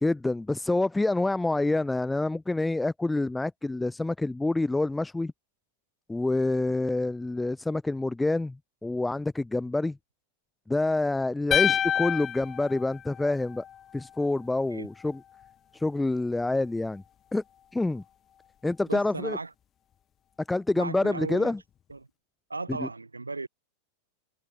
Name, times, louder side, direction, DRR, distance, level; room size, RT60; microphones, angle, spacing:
voice 1, 0.0-5.3 6.1-8.6 8.8-10.0 10.7-13.6 13.9-15.2 15.7-17.0 17.3-17.4 17.7-18.0 18.6-19.4 20.5-21.6 22.8-22.9, left 2 dB, 5° left, 1.5 m, -27 dB
sound 1, 11.5-13.8, left 9 dB, 25° left, 2.6 m, -27 dB
voice 2, 18.9-19.5 20.7-21.5 21.9-22.1 22.5-23.5, right 3 dB, 80° right, 7.7 m, -36 dB
figure-of-eight pair, 90°, 0 cm